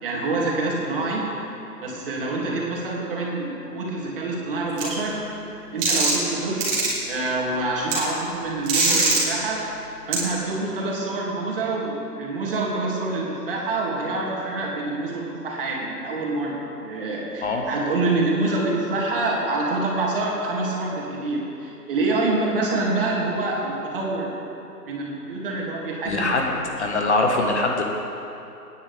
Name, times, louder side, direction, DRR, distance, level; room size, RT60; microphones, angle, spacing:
voice 1, 0.0-1.3 1.8-5.2 5.7-6.7 7.0-9.7 10.1-24.4 24.9-26.6, right 2 dB, 35° right, -3 dB, 2.7 m, -26 dB
sound 1, 4.8-4.9 5.8-6.3 6.6-6.9 7.9-8.0 8.7-9.2 10.1-10.2, right 3 dB, 15° right, 2.7 m, -21 dB
voice 2, 26.0-26.4 26.8-27.8, left 2 dB, 45° left, 1 dB, 1.6 m, -22 dB
25.0 x 10.0 x 3.5 m, 2.8 s
figure-of-eight pair, 150°, 48 cm